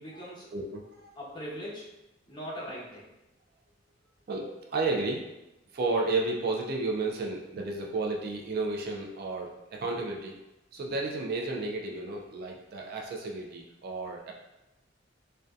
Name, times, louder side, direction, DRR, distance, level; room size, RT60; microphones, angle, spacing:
voice 1, 0.0-0.5 1.2-1.9 2.3-3.1, equal, 25° left, -8 dB, 0.8 m, -40 dB
voice 2, 0.5-1.1 4.3-5.3 5.7-10.3 10.7-14.3, right 3 dB, 55° right, 1 dB, 0.3 m, -32 dB
2.5 x 2.2 x 2.3 m, 0.96 s
head